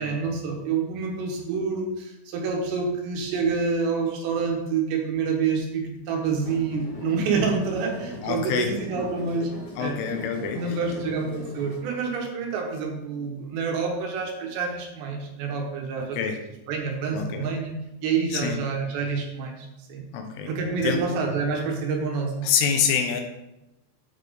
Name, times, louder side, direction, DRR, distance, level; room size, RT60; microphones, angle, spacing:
voice 1, 0.0-9.5 9.8-10.0 10.5-16.2 16.7-17.7 18.0-20.1 20.5-22.5, right 5 dB, 75° right, 1 dB, 2.9 m, -27 dB
sound 1, 6.2-11.8, left 2 dB, 45° left, 2.0 m, -40 dB
voice 2, 8.2-8.7 9.8-10.8 16.2-16.4 17.1-17.5 18.3-18.6 20.1-20.5 20.8-21.0 22.4-23.2, left 7 dB, 90° left, 5 dB, 3.3 m, -26 dB
8.6 x 4.1 x 4.9 m, 0.91 s
omnidirectional pair, 5.5 m